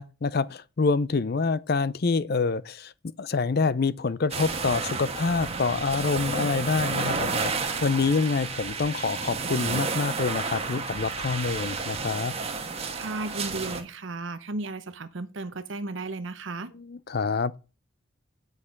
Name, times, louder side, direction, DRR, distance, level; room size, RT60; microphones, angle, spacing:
voice 1, 0.0-2.9 3.2-12.3 16.7-17.6, left 4 dB, 50° left, 0.5 m, -26 dB
sound 1, 4.3-13.8, right 4 dB, 30° right, 1.3 m, -31 dB
voice 2, 12.9-16.7, right 2 dB, 65° right, 0.8 m, -34 dB
9.7 x 6.6 x 5.2 m
head